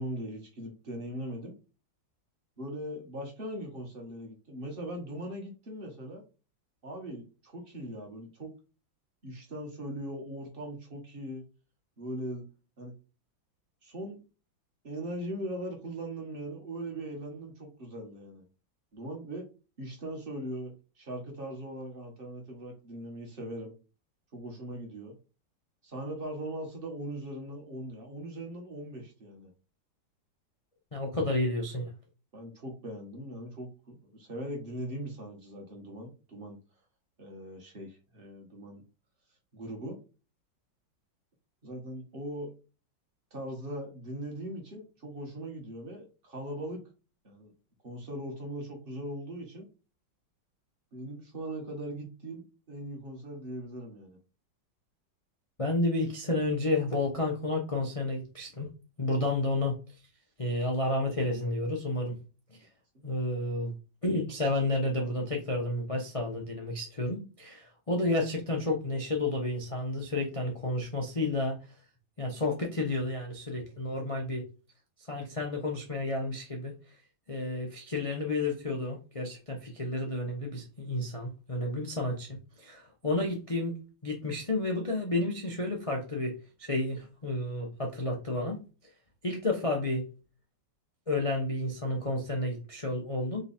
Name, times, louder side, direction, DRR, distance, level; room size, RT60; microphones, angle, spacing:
voice 1, 0.0-1.5 2.6-6.2 6.8-8.5 9.2-11.4 12.0-12.5 12.8-12.9 13.8-14.2 14.8-18.4 18.9-19.5 19.8-23.7 24.3-25.2 25.8-29.5 32.3-36.6 37.2-38.8 39.5-40.0 41.6-42.5 43.3-46.8 47.2-47.5 47.8-49.7 50.9-54.2, right 1 dB, 35° right, 1.3 m, -40 dB
voice 2, 30.9-31.9 55.6-58.7 59.0-59.8 60.4-62.2 63.0-63.7 64.0-71.6 72.2-74.5 75.1-76.7 77.3-88.6 89.2-90.1 91.1-93.4, left 2 dB, 55° left, 0.3 m, -31 dB
3.8 x 3.2 x 4.2 m
omnidirectional pair, 2.1 m